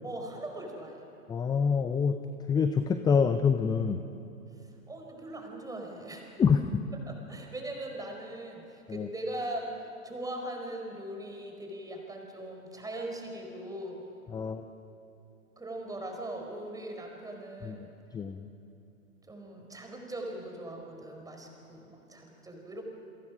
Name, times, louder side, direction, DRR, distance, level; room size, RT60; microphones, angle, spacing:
voice 1, 0.0-1.0 4.6-6.4 7.1-14.0 15.6-17.9 19.3-22.8, right 1 dB, 10° right, 2 dB, 4.6 m, -40 dB
voice 2, 1.3-2.2 2.5-4.0 6.4-6.7 8.9-9.1 14.3-14.6 17.6-17.8 18.1-18.5, left 6 dB, 10° left, 8 dB, 0.6 m, -26 dB
29.5 x 22.5 x 6.2 m, 2.8 s
hypercardioid pair, 110°, 42 cm